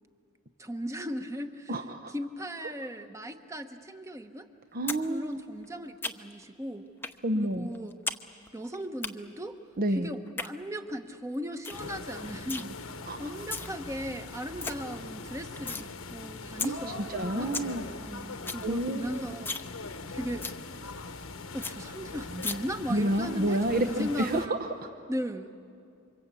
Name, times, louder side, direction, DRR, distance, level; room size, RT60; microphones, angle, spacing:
voice 1, 0.6-1.8 2.1-4.5 5.1-6.9 7.3-8.0 8.5-9.6 9.9-12.8 13.2-19.8 20.1-20.5 21.5-24.5 25.1-25.5, equal, 15° right, 7 dB, 1.1 m, -37 dB
voice 2, 1.7-2.1 4.7-5.3 7.2-7.7 9.8-10.1 13.1-13.2 16.6-16.8 17.1-17.9 18.6-19.2 22.9-24.9, right 1 dB, 45° right, 7 dB, 0.9 m, -29 dB
sound 1, 4.9-5.0 5.3-6.4 7.0-7.2 7.5-8.2 8.5-9.1 10.1-10.5 11.0-11.1 11.3-11.4 11.6-11.9 12.1-12.6 13.3-13.7 14.1-14.2 14.4-14.7 15.1-15.9 16.2-16.3 16.6-16.7 17.1-17.2 17.4-17.7 18.0-18.1 18.3-18.6 19.0-19.1 19.4-19.7 20.0-20.1 20.4-20.6 21.0-21.1 21.3-21.4 21.6-21.7 22.4-22.5, left 4 dB, 10° left, 0.8 m, -34 dB
sound 2, 11.7-24.5, left 3 dB, 75° left, 1.3 m, -41 dB
28.0 x 25.0 x 8.4 m, 2.5 s
head